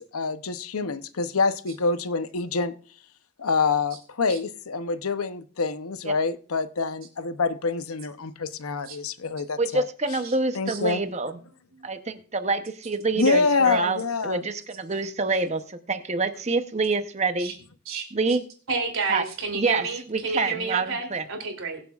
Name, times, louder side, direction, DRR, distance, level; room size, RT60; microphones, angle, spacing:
voice 1, 0.0-2.7 3.4-9.8 10.5-11.0 13.2-14.4, left 4 dB, 85° left, 12 dB, 0.7 m, -26 dB
voice 2, 9.6-11.3 11.8-17.5 18.1-18.4 19.1-19.2 19.5-21.2, right 3 dB, 30° right, 9 dB, 0.8 m, -27 dB
voice 3, 18.7-21.8, right 4 dB, 70° right, 4 dB, 2.9 m, -30 dB
22.0 x 7.8 x 2.4 m, 0.41 s
head